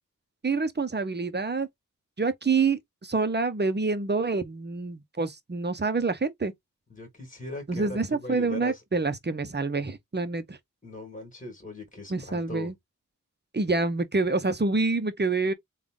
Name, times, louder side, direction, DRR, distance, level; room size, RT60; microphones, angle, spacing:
voice 1, 0.4-1.7 2.2-6.5 7.7-10.6 12.1-12.7 13.5-15.5, right 3 dB, 35° right, 0.7 m, -27 dB
voice 2, 6.9-8.8 10.8-12.7, left 1 dB, 25° left, 1.7 m, -39 dB
3.6 x 2.3 x 3.5 m
wide cardioid pair, 45°, 31 cm